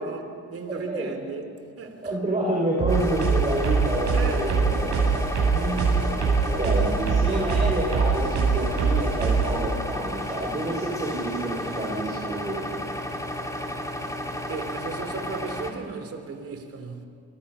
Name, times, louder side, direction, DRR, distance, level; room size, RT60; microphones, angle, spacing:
voice 1, 0.0-2.1 4.1-4.6 14.5-17.1, right 4 dB, 50° right, 3.0 m, -36 dB
voice 2, 0.7-1.1 2.0-5.1 5.5-6.0 6.6-12.7, right 1 dB, 25° right, 5.8 m, -29 dB
sound 1, 2.8-9.6, right 5 dB, 70° right, 7.8 m, -23 dB
sound 2, 2.9-15.7, left 1 dB, 10° left, 3.3 m, -33 dB
26.0 x 23.5 x 5.5 m
cardioid pair, 90°, 30 cm